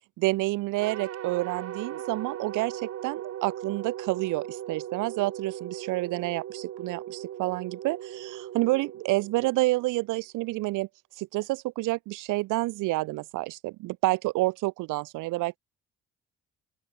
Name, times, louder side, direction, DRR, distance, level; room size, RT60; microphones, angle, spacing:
voice 1, 0.2-10.9 11.2-15.6, right 20 dB, 85° right, 0.5 m, -29 dB
sound 1, 0.8-10.1, right 11 dB, 50° right, 0.8 m, -38 dB
open air
cardioid pair, 90°, 30 cm